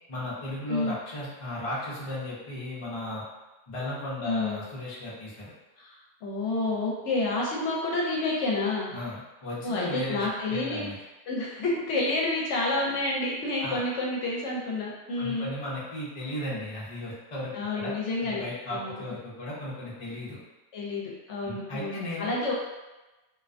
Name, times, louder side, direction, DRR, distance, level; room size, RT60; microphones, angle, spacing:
voice 1, 0.1-3.2 3.7-5.5 8.9-11.0 13.6-13.8 15.1-17.9 18.2-20.4 21.4-22.3, left 1 dB, 35° left, -7 dB, 0.5 m, -35 dB
voice 2, 4.2-4.6 5.8-8.9 9.6-10.9 11.3-15.5 17.5-18.4 18.7-19.0 20.7-22.5, left 2 dB, 75° left, -3 dB, 0.9 m, -29 dB
2.4 x 2.2 x 2.4 m, 1.1 s
omnidirectional pair, 1.3 m